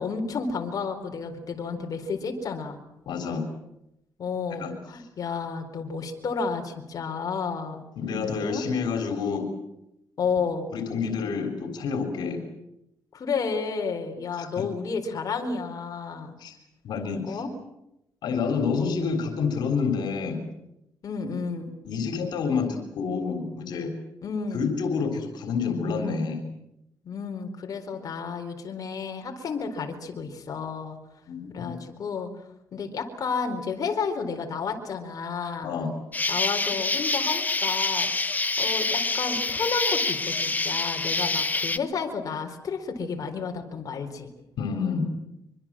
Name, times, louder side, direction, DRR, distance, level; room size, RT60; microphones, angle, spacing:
voice 1, 0.0-2.8 4.2-7.8 8.4-8.6 10.2-10.7 13.1-16.4 17.2-17.5 21.0-21.7 24.2-24.7 27.0-31.0 31.5-32.3 32.7-35.7 36.3-44.3, left 5 dB, 55° left, 3 dB, 4.2 m, -31 dB
voice 2, 3.1-3.4 4.6-4.7 8.0-9.4 10.7-12.4 14.3-14.6 16.4-16.5 16.8-17.4 18.2-20.4 21.8-23.9 24.5-26.4 31.3-31.8 35.6-35.9 44.6-45.1, left 5 dB, 85° left, 6 dB, 3.7 m, -28 dB
Insect, 36.1-41.8, left 3 dB, 25° left, 1.4 m, -26 dB
24.5 x 24.5 x 7.6 m, 0.87 s
cardioid pair, 95°, 7 cm